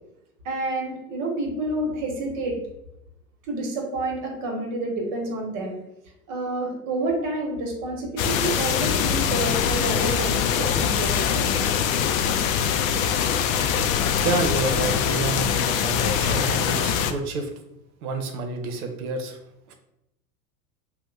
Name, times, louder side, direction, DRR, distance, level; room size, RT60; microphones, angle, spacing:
voice 1, 0.4-2.6 3.5-5.7 6.3-11.6, right 2 dB, 40° right, 0 dB, 1.2 m, -29 dB
sound 1, 8.2-17.1, left 8 dB, 60° left, 0.5 m, -23 dB
voice 2, 14.2-17.5 18.0-19.4 19.7-19.8, right 3 dB, 70° right, 5 dB, 0.8 m, -29 dB
2.8 x 2.2 x 3.4 m, 0.85 s
hypercardioid pair, 90°, 46 cm